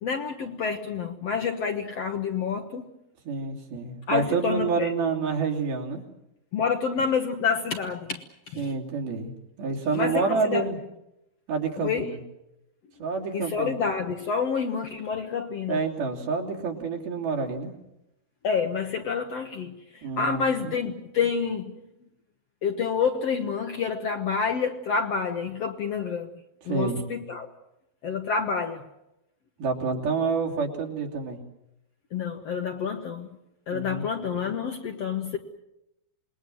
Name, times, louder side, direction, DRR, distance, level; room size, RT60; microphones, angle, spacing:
voice 1, 0.0-2.9 4.1-4.9 6.5-8.7 9.9-10.6 11.8-12.1 13.3-15.8 18.4-21.8 22.6-26.3 26.7-27.5 28.0-28.8 32.1-33.3 33.7-35.4, left 6 dB, 60° left, 4 dB, 1.8 m, -28 dB
voice 2, 3.2-6.0 8.6-9.3 9.6-10.8 11.5-12.2 13.0-13.7 15.7-17.7 20.0-20.8 26.6-27.0 29.6-31.4 33.7-34.0, right 5 dB, 80° right, 0 dB, 4.9 m, -28 dB
27.5 x 21.0 x 7.8 m, 0.88 s
omnidirectional pair, 4.3 m